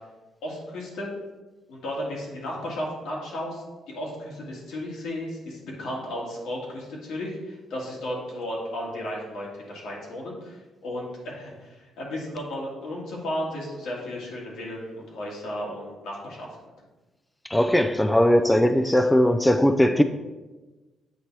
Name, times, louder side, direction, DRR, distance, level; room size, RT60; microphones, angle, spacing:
voice 1, 0.4-1.1 1.7-16.5, left 1 dB, 80° left, -3 dB, 1.7 m, -34 dB
voice 2, 17.5-20.0, equal, 10° left, 7 dB, 0.3 m, -19 dB
8.1 x 2.9 x 4.5 m, 1.2 s
cardioid pair, 90°, 0 cm